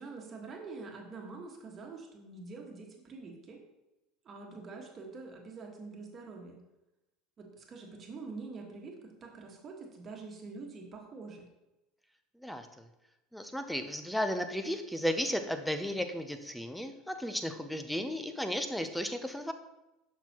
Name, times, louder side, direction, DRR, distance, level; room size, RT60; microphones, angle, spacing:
voice 1, 0.0-3.6 4.2-6.6 7.4-11.5, right 4 dB, 35° right, 1 dB, 1.6 m, -45 dB
voice 2, 12.4-12.9 13.3-19.5, equal, ahead, 7 dB, 0.7 m, -34 dB
6.8 x 6.1 x 3.0 m, 0.97 s
hypercardioid pair, 85°, 0 cm